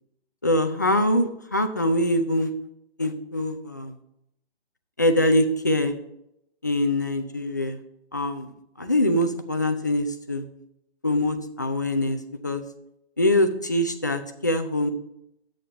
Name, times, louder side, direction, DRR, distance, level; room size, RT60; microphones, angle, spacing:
voice 1, 0.4-2.5 3.0-3.9 5.0-5.9 6.6-7.8 8.1-8.5 8.8-10.4 11.0-12.6 13.2-14.9, left 1 dB, 20° left, 7 dB, 0.3 m, -23 dB
10.5 x 8.5 x 2.9 m, 0.78 s
figure-of-eight pair, 140°, 32 cm